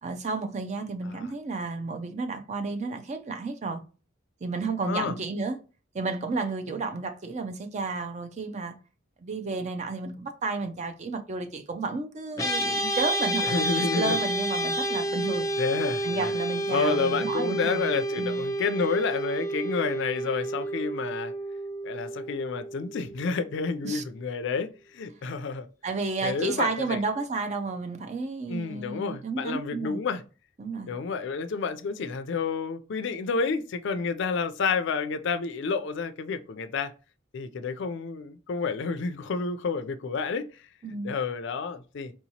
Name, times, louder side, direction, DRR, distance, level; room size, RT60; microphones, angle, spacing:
voice 1, 0.0-3.8 4.4-5.6 5.9-8.7 9.2-15.5 16.0-17.9 18.2-18.4 23.8-24.0 25.8-30.0 30.6-30.9 40.8-41.1, right 3 dB, 35° right, 0.5 m, -32 dB
voice 2, 4.8-5.1 6.7-6.8 13.4-14.2 14.9-15.0 15.6-16.3 16.7-21.3 21.8-25.7 26.2-27.0 28.5-30.2 30.9-36.9 37.3-40.5 41.0-42.1, left 5 dB, 60° left, 0.4 m, -30 dB
sound 1, 12.4-23.8, right 1 dB, 15° left, 0.6 m, -30 dB
4.5 x 2.8 x 2.8 m
head